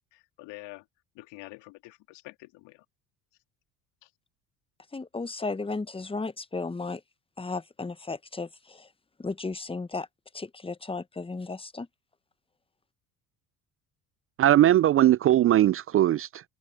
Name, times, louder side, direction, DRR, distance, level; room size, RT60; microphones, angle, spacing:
voice 1, 0.1-0.9 1.1-2.8 4.0-4.1, left 22 dB, 65° left, 3.0 m, -46 dB
voice 2, 4.9-7.0 7.4-8.9 9.2-10.1 10.3-11.9, left 3 dB, 10° left, 1.1 m, -34 dB
voice 3, 14.4-16.4, right 13 dB, 30° right, 0.4 m, -20 dB
hypercardioid pair, 60°, 46 cm